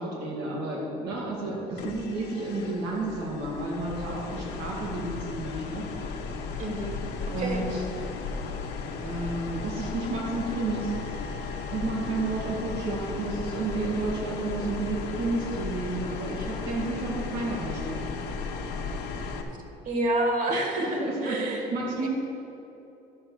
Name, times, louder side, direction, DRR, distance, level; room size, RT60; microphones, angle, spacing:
voice 1, 0.0-5.9 7.3-7.8 9.0-10.9 11.7-18.1 20.5-22.1, right 2 dB, 90° right, -2 dB, 2.2 m, -31 dB
sound 1, 1.8-19.4, left 4 dB, 85° left, 1.1 m, -35 dB
voice 2, 6.6-7.0 7.4-7.7 19.9-21.7 22.0-22.1, right 1 dB, 50° right, 3 dB, 1.9 m, -28 dB
12.5 x 5.7 x 6.5 m, 2.9 s
cardioid pair, 110°, 17 cm